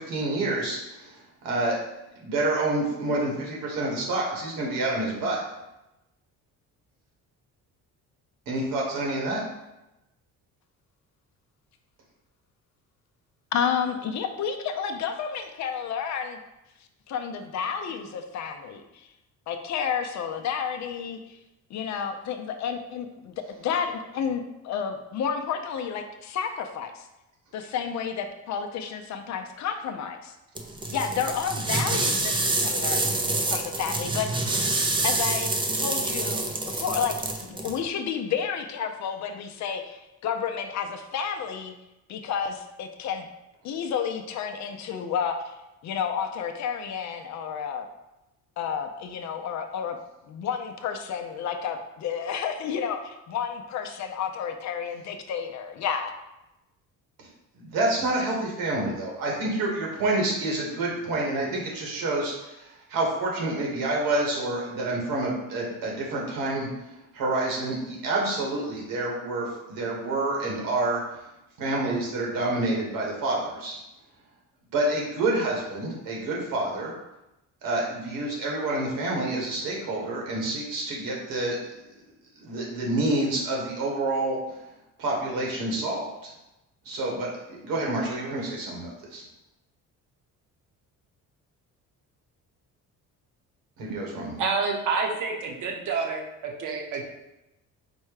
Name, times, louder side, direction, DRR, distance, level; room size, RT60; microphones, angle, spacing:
voice 1, 0.0-1.8 2.1-5.4 8.5-9.4 57.2-57.3 57.5-66.7 67.1-71.0 71.6-73.8 74.7-76.9 77.6-81.6 82.4-84.4 85.0-86.3 86.8-89.2 93.8-94.3, right 2 dB, 85° right, -2 dB, 1.5 m, -28 dB
voice 2, 13.5-16.4 17.1-19.1 19.5-21.2 21.7-27.0 27.5-30.3 30.9-33.1 33.5-34.6 35.0-41.7 42.1-43.3 43.6-45.5 45.8-47.9 48.6-50.0 50.3-56.1, left 7 dB, 55° left, 6 dB, 0.5 m, -31 dB
sound 1, 30.5-37.8, right 2 dB, 15° right, 0.4 m, -27 dB
voice 3, 94.4-97.0, right 4 dB, 65° right, 1 dB, 0.9 m, -28 dB
4.4 x 2.2 x 4.7 m, 0.94 s
cardioid pair, 130°, 33 cm